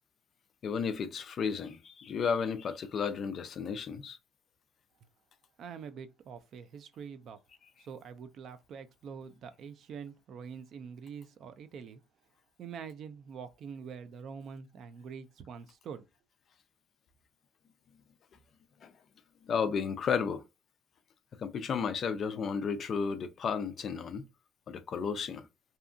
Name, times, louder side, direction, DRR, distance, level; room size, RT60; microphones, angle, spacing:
voice 1, 0.6-4.2 18.8-18.9 19.4-20.4 21.4-24.2 24.7-25.4, left 6 dB, 40° left, 0.3 m, -33 dB
voice 2, 5.6-7.4 7.8-12.0 12.6-16.0, right 6 dB, 50° right, 0.4 m, -45 dB
2.7 x 2.3 x 2.4 m
cardioid pair, 150°, 0 cm